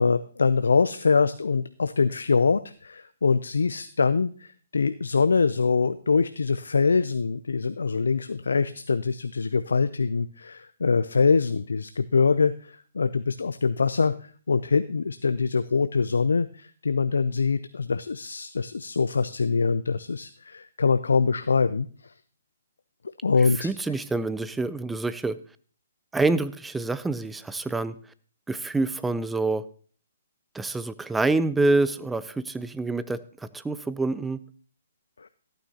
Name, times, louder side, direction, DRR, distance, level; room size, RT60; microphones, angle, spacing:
voice 1, 0.0-22.1 23.2-23.7 35.2-35.3, left 5 dB, 80° left, 12 dB, 0.4 m, -24 dB
voice 2, 23.6-25.4 26.1-27.9 28.5-29.6 30.5-33.2 33.5-34.4, right 3 dB, 5° right, 15 dB, 0.5 m, -26 dB
14.5 x 9.0 x 2.8 m, 0.43 s
hypercardioid pair, 140°, 0 cm